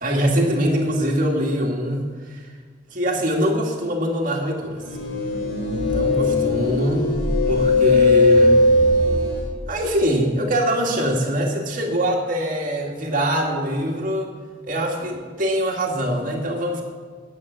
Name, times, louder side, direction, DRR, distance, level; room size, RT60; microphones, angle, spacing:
voice 1, 0.0-2.5 2.9-4.8 5.8-7.2 7.5-8.6 9.7-14.3 14.6-16.8, equal, 45° right, 0 dB, 2.0 m, -23 dB
sound 1, 4.8-9.5, left 2 dB, 75° left, 3.5 m, -18 dB
9.9 x 7.7 x 8.9 m, 1.5 s
head